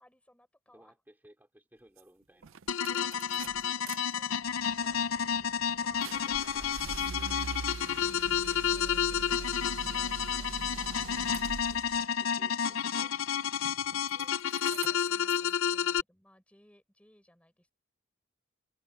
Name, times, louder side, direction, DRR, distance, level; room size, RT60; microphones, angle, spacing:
voice 1, 0.0-0.9 2.9-5.3 5.7-7.5 8.6-10.5 13.7-17.7, left 1 dB, 5° left, 6.3 m, -62 dB
voice 2, 0.7-2.6 10.7-13.1, right 1 dB, 10° right, 3.2 m, -60 dB
sound 1, 1.8-2.0 2.5-2.6 2.8-2.9 3.1-3.5 4.1-4.2 4.6-5.3 5.6-7.9, equal, 30° right, 5.3 m, -55 dB
sound 2, 2.0-2.1 2.4-4.0 4.3-12.1 13.5-14.2 14.5-15.5, right 5 dB, 70° right, 0.5 m, -43 dB
sound 3, 2.7-16.0, left 8 dB, 75° left, 0.6 m, -31 dB
open air
head